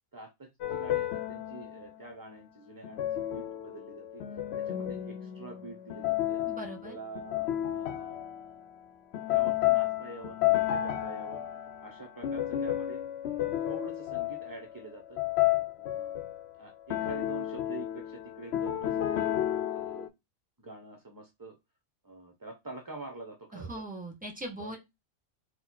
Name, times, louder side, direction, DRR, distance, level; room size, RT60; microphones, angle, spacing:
voice 1, 0.1-4.2 4.6-6.4 6.8-8.2 9.3-11.4 11.8-13.0 13.4-15.2 15.8-16.2 16.6-19.3 19.7-20.1 20.6-21.6 22.0-23.8 24.6-24.8, right 2 dB, 30° right, 4 dB, 0.4 m, -46 dB
sound 1, 0.6-2.0 2.8-8.6 9.1-16.5 16.9-20.1, left 13 dB, 70° left, 0.8 m, -32 dB
voice 2, 6.5-6.9 23.5-24.8, right 1 dB, 10° right, 2 dB, 1.0 m, -40 dB
4.2 x 2.1 x 4.3 m, 0.21 s
omnidirectional pair, 1.2 m